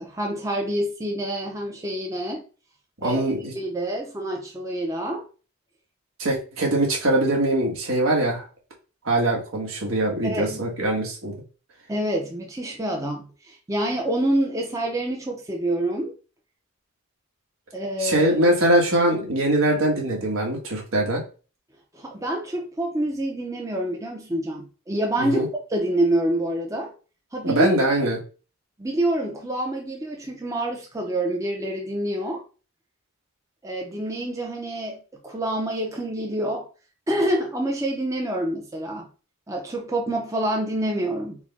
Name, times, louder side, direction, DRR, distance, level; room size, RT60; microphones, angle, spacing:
voice 1, 0.0-2.4 3.0-3.2 3.5-5.2 10.2-10.6 11.9-16.1 17.7-18.4 21.9-25.4 25.7-26.9 27.3-27.7 28.0-28.1 28.8-32.4 33.6-36.7 37.1-39.0 39.5-41.4, right 1 dB, 15° right, 0 dB, 0.6 m, -27 dB
voice 2, 3.0-3.5 6.2-8.5 9.0-11.3 18.0-21.2 25.2-25.5 27.4-28.2, right 1 dB, 80° right, -1 dB, 1.4 m, -22 dB
4.5 x 2.2 x 4.1 m, 0.36 s
head